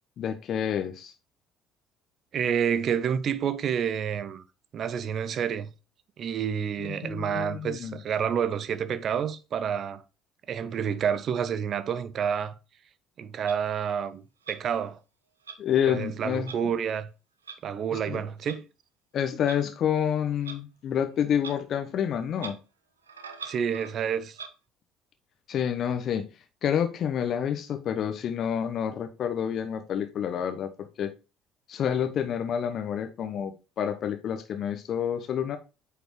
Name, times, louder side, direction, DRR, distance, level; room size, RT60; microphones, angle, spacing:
voice 1, 0.2-1.1 6.8-8.0 15.6-16.5 17.9-18.2 19.1-22.6 25.5-26.3 26.6-31.1 31.7-35.6, left 8 dB, 50° left, 1.0 m, -28 dB
voice 2, 2.3-4.4 4.7-5.7 6.2-10.0 10.5-12.6 13.2-14.2 14.5-15.0 15.9-17.1 17.6-18.7 23.4-24.4, right 8 dB, 45° right, 0.7 m, -29 dB
Clock, 13.5-13.6 14.4-14.6 15.4-15.6 16.4-16.6 17.4-17.6 18.5-18.6 19.5-19.6 20.4-20.6 21.4-21.6 21.8-21.9 22.3-22.6 23.0-23.9 24.3-24.5, right 6 dB, 85° right, 0.7 m, -41 dB
8.9 x 5.1 x 3.1 m
figure-of-eight pair, 55°, 0 cm